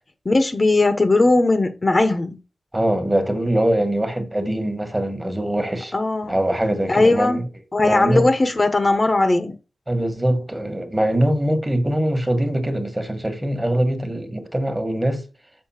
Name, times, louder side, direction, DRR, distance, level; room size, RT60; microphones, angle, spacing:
voice 1, 0.2-2.4 5.9-6.4 6.9-7.4 7.7-9.5, left 2 dB, 30° left, 1.0 m, -18 dB
voice 2, 2.7-5.9 6.3-7.5 7.8-8.3 9.9-15.2, right 1 dB, 15° right, 1.6 m, -22 dB
6.7 x 5.4 x 5.8 m
wide cardioid pair, 110°, 0 cm